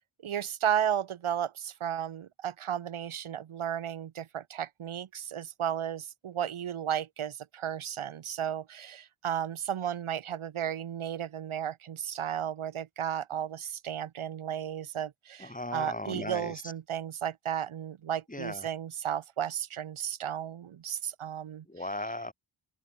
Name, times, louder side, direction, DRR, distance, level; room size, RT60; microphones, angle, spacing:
voice 1, 0.2-21.6, right 9 dB, 85° right, 1.2 m, -34 dB
voice 2, 15.4-16.7 18.3-18.7 21.7-22.3, left 1 dB, 15° left, 6.2 m, -37 dB
open air
wide cardioid pair, 105°, 48 cm